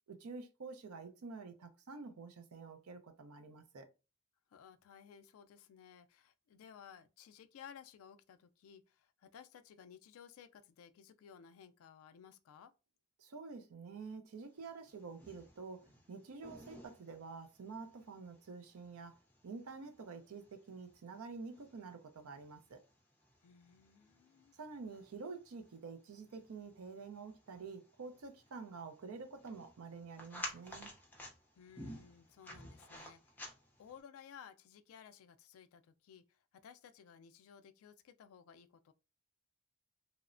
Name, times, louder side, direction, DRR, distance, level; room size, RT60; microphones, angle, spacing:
voice 1, 0.1-3.9 13.2-19.2 19.4-22.8 24.5-30.9, right 4 dB, 80° right, 0.5 m, -48 dB
voice 2, 4.5-12.7 23.4-24.6 31.5-33.5 33.8-38.9, left 8 dB, 70° left, 0.3 m, -57 dB
sound 1, 14.6-34.0, left 1 dB, 10° left, 0.5 m, -54 dB
2.9 x 2.0 x 2.4 m
head